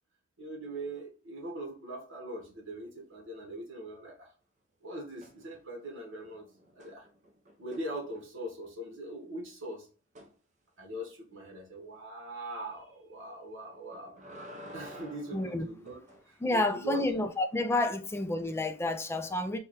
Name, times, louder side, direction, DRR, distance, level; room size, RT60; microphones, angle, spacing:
voice 1, 0.4-4.3 4.8-6.4 6.7-7.1 7.6-9.9 10.8-14.2 14.7-16.0 16.3-17.2, right 1 dB, 65° right, 1.2 m, -41 dB
sound 1, 5.2-5.8 6.2-8.6 10.1-10.3 13.7-16.3 18.5-18.6, equal, 35° right, 0.7 m, -50 dB
voice 2, 15.3-15.6 16.4-19.6, left 2 dB, 10° left, 0.3 m, -29 dB
4.7 x 2.3 x 3.0 m
head